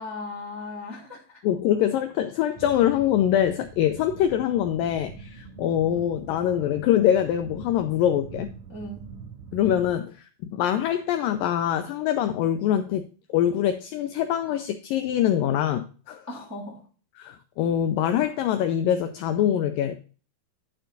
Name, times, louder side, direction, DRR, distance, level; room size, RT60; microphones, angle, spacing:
voice 1, 0.0-1.4 8.7-9.0 16.3-16.8, left 2 dB, 5° right, 1.4 m, -37 dB
voice 2, 1.4-8.5 9.5-16.2 17.2-20.0, left 10 dB, 85° left, 2.0 m, -24 dB
sound 1, 2.5-9.9, right 5 dB, 80° right, 5.7 m, -43 dB
11.5 x 4.5 x 3.9 m
omnidirectional pair, 4.6 m